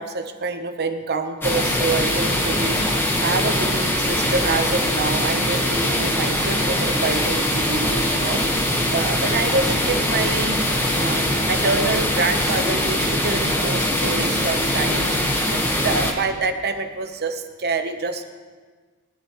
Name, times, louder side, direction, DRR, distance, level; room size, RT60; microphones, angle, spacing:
voice 1, 0.0-2.8 3.2-8.4 8.9-10.6 11.0-15.1 15.5-18.3, right 3 dB, 45° right, 7 dB, 1.0 m, -26 dB
sound 1, 1.4-16.1, left 1 dB, 10° left, 1.4 m, -22 dB
20.0 x 12.5 x 3.2 m, 1.5 s
head